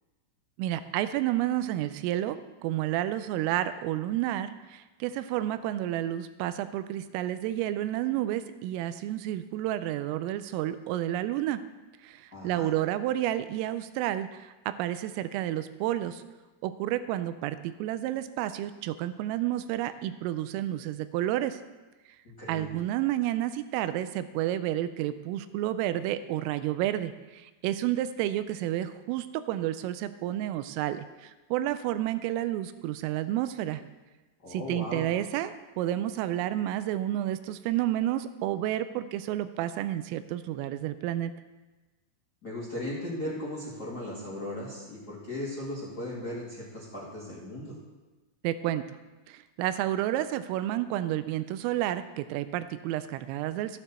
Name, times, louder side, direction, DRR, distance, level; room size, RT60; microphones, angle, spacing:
voice 1, 0.6-11.6 12.0-16.2 16.6-21.6 22.5-33.8 34.5-41.3 48.4-48.9 49.3-53.8, right 13 dB, 85° right, 12 dB, 3.1 m, -30 dB
voice 2, 12.3-12.7 22.2-22.7 34.4-35.1 42.4-47.7, left 1 dB, 35° left, -8 dB, 1.5 m, -37 dB
13.5 x 9.1 x 4.3 m, 1.2 s
omnidirectional pair, 6.0 m